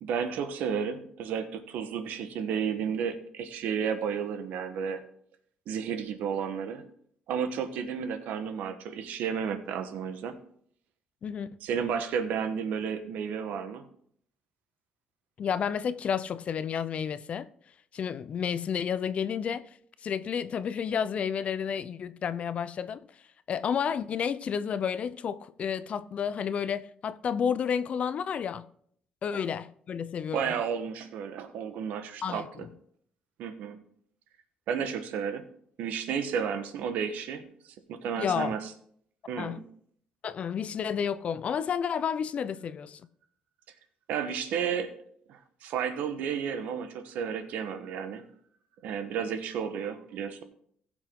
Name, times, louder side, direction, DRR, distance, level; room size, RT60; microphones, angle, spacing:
voice 1, 0.0-5.0 5.7-6.8 7.3-10.3 11.6-13.9 29.3-29.4 30.3-32.7 33.4-33.8 34.7-35.5 35.8-37.5 37.9-38.7 39.3-39.6 44.1-44.9 45.3-48.2 48.8-50.4, right 7 dB, 75° right, 1.1 m, -32 dB
voice 2, 11.2-11.6 15.4-17.5 17.9-19.7 20.0-23.0 23.5-28.7 29.2-30.5 32.2-32.7 38.2-38.6 39.4-39.6 40.2-43.0, left 7 dB, 50° left, 0.6 m, -31 dB
15.5 x 6.2 x 3.7 m
cardioid pair, 90°, 3 cm